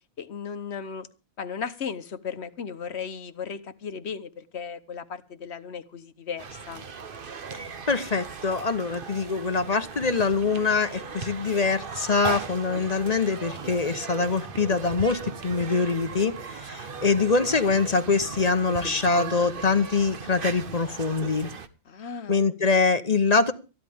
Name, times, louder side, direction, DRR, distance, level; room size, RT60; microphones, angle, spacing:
voice 1, 0.2-1.1 1.4-6.8 21.9-22.4, left 6 dB, 65° left, 1.2 m, -36 dB
sound 1, 6.4-21.7, right 5 dB, 50° right, 1.1 m, -38 dB
voice 2, 7.5-21.5 22.3-23.5, left 4 dB, 35° left, 1.0 m, -24 dB
19.0 x 14.0 x 3.5 m
omnidirectional pair, 1.2 m